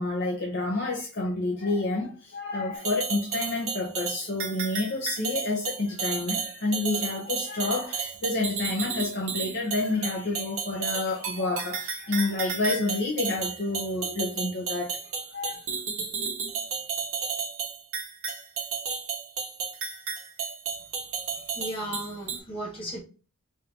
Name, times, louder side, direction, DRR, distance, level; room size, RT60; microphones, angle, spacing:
voice 1, 0.0-14.9 15.3-15.6, left 2 dB, 50° left, -2 dB, 0.8 m, -29 dB
sound 1, 2.7-22.4, right 5 dB, 75° right, 1.1 m, -33 dB
voice 2, 21.5-23.0, right 1 dB, 25° left, -4 dB, 1.4 m, -35 dB
5.6 x 2.6 x 2.9 m, 0.37 s
head